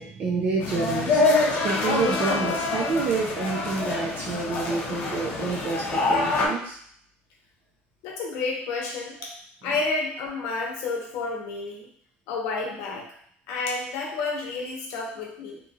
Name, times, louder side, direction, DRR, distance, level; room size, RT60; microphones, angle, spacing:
voice 1, 0.0-6.8, right 4 dB, 45° right, -3 dB, 0.4 m, -28 dB
sound 1, 0.6-6.5, left 3 dB, 50° left, 0.6 m, -25 dB
voice 2, 8.0-9.3 9.6-11.9 12.3-13.1 13.5-15.6, left 3 dB, 90° left, -1 dB, 0.8 m, -30 dB
2.9 x 2.3 x 2.7 m, 0.62 s
cardioid pair, 160°, 4 cm